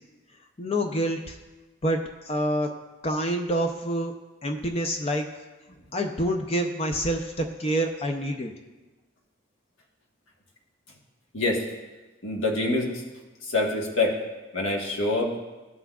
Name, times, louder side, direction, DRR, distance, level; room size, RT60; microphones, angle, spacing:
voice 1, 0.6-1.4 1.8-2.0 2.3-2.7 3.0-4.1 4.4-5.3 5.9-8.5, equal, 30° left, 5 dB, 0.5 m, -27 dB
voice 2, 12.2-12.9 13.4-14.2 14.5-15.3, left 2 dB, 80° left, -1 dB, 1.3 m, -25 dB
15.5 x 5.8 x 2.4 m, 1.2 s
head